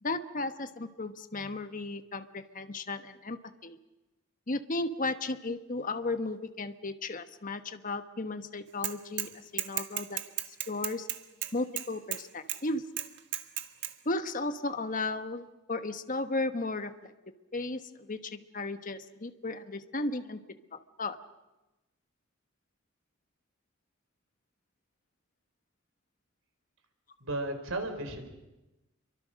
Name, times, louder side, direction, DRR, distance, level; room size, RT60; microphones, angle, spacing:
voice 1, 0.0-3.8 4.5-10.2 10.7-11.1 11.5-12.8 14.0-17.1 17.5-20.4 20.7-21.2, left 2 dB, 40° left, 9 dB, 1.2 m, -35 dB
Bicycle / Mechanisms, 8.8-9.3 9.6-12.2 12.5-12.6 13.0-13.9, right 13 dB, 60° right, 1.5 m, -34 dB
voice 2, 27.2-28.3, right 2 dB, 85° right, 7 dB, 4.4 m, -34 dB
29.0 x 24.0 x 6.4 m, 1.0 s
head